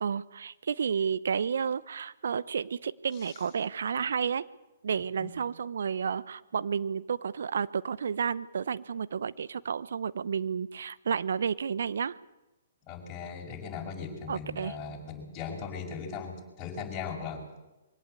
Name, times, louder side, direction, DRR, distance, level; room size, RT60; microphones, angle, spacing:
voice 1, 0.0-4.4 4.8-12.2 14.3-14.8, right 6 dB, 65° right, 17 dB, 0.8 m, -31 dB
voice 2, 12.9-17.6, left 6 dB, 25° left, -2 dB, 6.4 m, -38 dB
23.5 x 17.0 x 8.2 m, 1.0 s
figure-of-eight pair, 125°, 0 cm